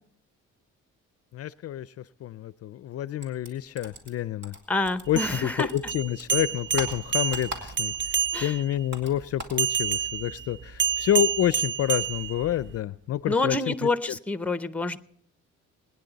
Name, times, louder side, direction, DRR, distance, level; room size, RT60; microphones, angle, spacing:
voice 1, 1.3-4.6 5.1-14.2, left 12 dB, 55° left, 16 dB, 0.4 m, -28 dB
sound 1, 3.2-5.3 5.6-8.1 8.4-9.6, right 1 dB, 60° right, 3.0 m, -39 dB
voice 2, 4.7-5.7 8.3-8.5 13.3-15.0, left 2 dB, 5° left, 12 dB, 0.7 m, -27 dB
sound 2, 5.1-8.7 9.6-12.8, right 7 dB, 40° right, 0.6 m, -29 dB
22.0 x 9.9 x 4.0 m, 0.66 s
cardioid pair, 90°, 30 cm